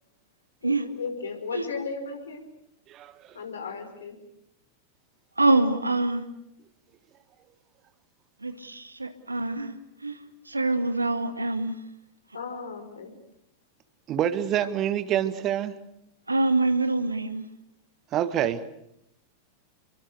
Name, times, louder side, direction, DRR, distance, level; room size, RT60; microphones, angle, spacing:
voice 1, 0.6-2.4 3.3-4.2 12.3-13.1, left 4 dB, 70° left, 6 dB, 5.1 m, -35 dB
voice 2, 5.4-6.3 8.4-9.7 10.0-11.8 16.3-17.5, right 2 dB, 80° right, 9 dB, 2.0 m, -25 dB
voice 3, 14.1-15.7 18.1-18.6, right 10 dB, 35° right, 13 dB, 1.6 m, -26 dB
30.0 x 23.0 x 6.5 m, 0.80 s
figure-of-eight pair, 90°, 0 cm